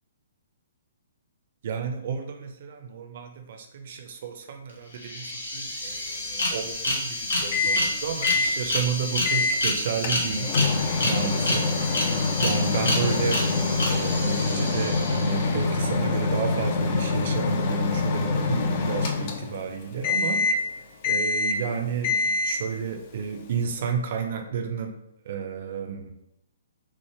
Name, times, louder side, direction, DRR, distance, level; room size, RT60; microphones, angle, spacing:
voice 1, 1.6-10.5 11.0-11.7 12.0-13.4 13.9-20.4 21.0-24.9 25.2-26.1, right 6 dB, 45° right, 4 dB, 0.4 m, -31 dB
sound 1, 4.7-4.8 5.0-15.8, left 1 dB, 70° left, 0.9 m, -29 dB
Microwave oven, 7.5-7.9 8.2-8.5 9.2-9.6 10.0-19.7 20.0-20.7 21.0-21.7 22.0-22.7, left 3 dB, 40° left, 0.4 m, -25 dB
3.1 x 2.1 x 3.2 m, 0.81 s
figure-of-eight pair, 120°, 0 cm